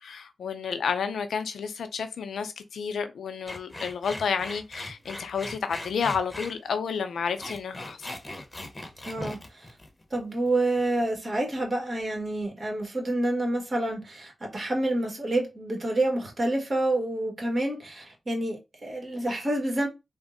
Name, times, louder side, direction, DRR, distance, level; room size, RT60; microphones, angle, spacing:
voice 1, 0.0-8.0, left 6 dB, 90° left, 0.4 m, -31 dB
sound 1, 3.5-6.5 7.2-10.5 10.8-11.2, left 1 dB, 25° left, 0.8 m, -39 dB
voice 2, 9.0-9.7 10.1-19.9, right 1 dB, 55° right, 1.3 m, -28 dB
3.5 x 2.0 x 2.5 m
cardioid pair, 50°, 0 cm